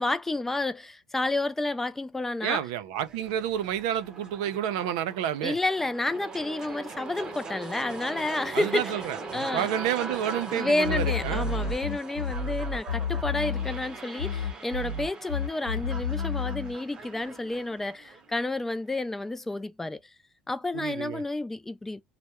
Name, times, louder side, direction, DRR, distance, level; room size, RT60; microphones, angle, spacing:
voice 1, 0.0-2.6 5.4-9.0 9.3-9.7 10.5-20.0 20.5-22.0, left 2 dB, 10° left, 0.3 m, -30 dB
voice 2, 2.4-5.6 8.5-11.5 20.7-21.2, right 10 dB, 85° right, 0.5 m, -30 dB
sound 1, 3.0-19.0, right 4 dB, 25° right, 0.7 m, -41 dB
sound 2, 10.8-13.9 14.2-16.7, left 5 dB, 80° left, 0.8 m, -30 dB
2.2 x 2.0 x 2.9 m
supercardioid pair, 125°, 3 cm